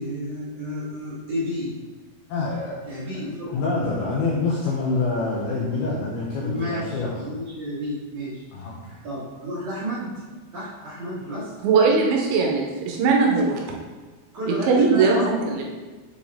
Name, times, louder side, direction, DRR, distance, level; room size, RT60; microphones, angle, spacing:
voice 1, 0.0-1.7 2.9-3.9 4.9-5.0 5.8-6.1 6.4-8.4 9.0-10.1 10.5-11.5 14.3-15.6, equal, 50° right, -11 dB, 2.1 m, -31 dB
voice 2, 2.3-2.8 3.5-7.2 8.5-9.0, left 3 dB, 85° left, -3 dB, 2.3 m, -26 dB
voice 3, 11.6-13.6 14.5-15.6, right 4 dB, 80° right, -1 dB, 2.9 m, -20 dB
7.5 x 4.2 x 3.6 m, 1.3 s
omnidirectional pair, 5.5 m